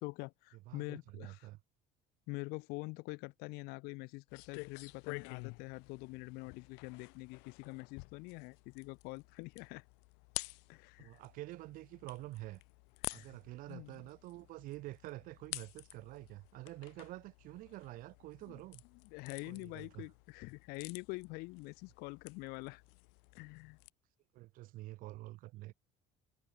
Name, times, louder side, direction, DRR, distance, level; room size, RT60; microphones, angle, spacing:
voice 1, 0.0-1.5 2.3-9.8 10.7-11.1 13.0-13.3 13.7-14.0 18.5-18.6 19.1-22.8 23.3-23.8, left 26 dB, 70° left, 1.0 m, -45 dB
voice 2, 0.7-1.6 11.0-12.6 13.1-18.8 19.4-20.1 24.3-25.7, right 18 dB, 55° right, 3.6 m, -48 dB
sound 1, 4.3-23.9, left 34 dB, 90° left, 1.8 m, -51 dB
cardioid pair, 170°, 17 cm